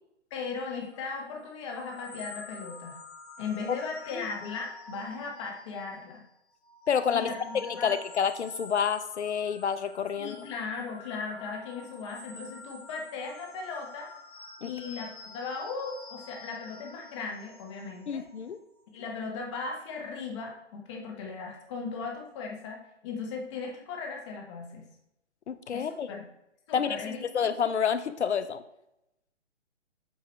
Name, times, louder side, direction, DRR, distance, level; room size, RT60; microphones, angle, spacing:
voice 1, 0.3-3.0 3.4-6.2 7.1-7.9 10.2-14.1 14.6-18.2 18.9-24.8 25.7-26.2 26.7-27.2, left 4 dB, 25° left, 1 dB, 1.2 m, -37 dB
sound 1, 0.9-6.1 6.5-18.8, left 2 dB, 45° left, 1.2 m, -48 dB
voice 2, 6.9-7.3 7.5-10.4 14.6-14.7 18.1-18.6 25.5-26.2 26.7-28.6, left 7 dB, 65° left, 12 dB, 0.6 m, -29 dB
8.3 x 2.8 x 4.5 m, 0.87 s
figure-of-eight pair, 145°, 36 cm